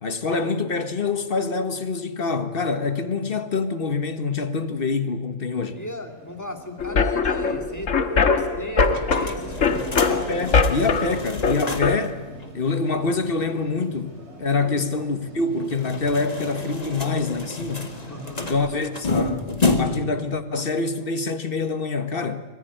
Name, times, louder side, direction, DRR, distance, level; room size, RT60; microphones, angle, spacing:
voice 1, 0.0-5.8 10.1-12.2 12.5-17.9 18.4-22.4, left 4 dB, 45° left, 1.6 m, -26 dB
sound 1, 5.5-18.8, right 1 dB, 55° right, 4.1 m, -43 dB
voice 2, 5.7-7.9 8.4-9.9 14.6-14.9 18.1-18.5, left 1 dB, 15° left, 2.5 m, -36 dB
sound 2, 6.8-12.0, left 4 dB, 75° left, 1.7 m, -22 dB
sound 3, 8.8-12.1 12.4-12.5 12.7-12.8 15.6-20.2, left 3 dB, 30° left, 1.8 m, -29 dB
25.0 x 19.0 x 9.3 m
omnidirectional pair, 1.3 m